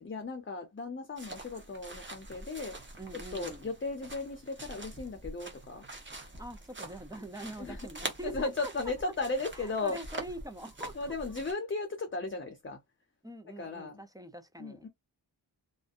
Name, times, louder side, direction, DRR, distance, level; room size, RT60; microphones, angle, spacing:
voice 1, 0.0-2.7 3.1-5.8 7.6-7.8 8.2-10.0 11.0-12.8 13.6-14.0 14.6-14.9, left 3 dB, 25° left, 0.6 m, -36 dB
sound 1, 1.2-11.5, right 2 dB, 25° right, 0.8 m, -45 dB
voice 2, 3.0-3.7 6.4-8.7 9.5-11.4 13.2-14.9, right 1 dB, 10° right, 0.3 m, -44 dB
2.6 x 2.1 x 2.4 m
wide cardioid pair, 90°, 46 cm